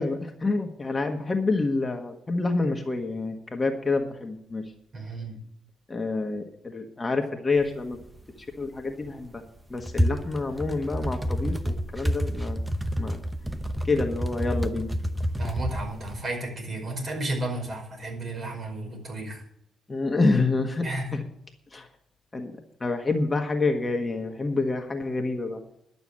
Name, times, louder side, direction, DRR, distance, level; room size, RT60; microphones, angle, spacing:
voice 1, 0.0-4.6 5.9-8.0 8.4-9.4 9.7-12.6 13.0-13.2 13.8-14.9 19.9-20.9 21.1-21.2 21.7-21.9 22.3-25.6, left 3 dB, 25° left, 3 dB, 1.5 m, -27 dB
voice 2, 4.9-5.4 15.4-19.4 20.8-21.1, right 2 dB, 45° right, 2 dB, 5.2 m, -33 dB
sound 1, 7.6-7.7 7.9-8.4 8.9-16.2, equal, 10° right, 0.8 m, -29 dB
11.5 x 7.0 x 8.7 m, 0.73 s
cardioid pair, 90°, 0 cm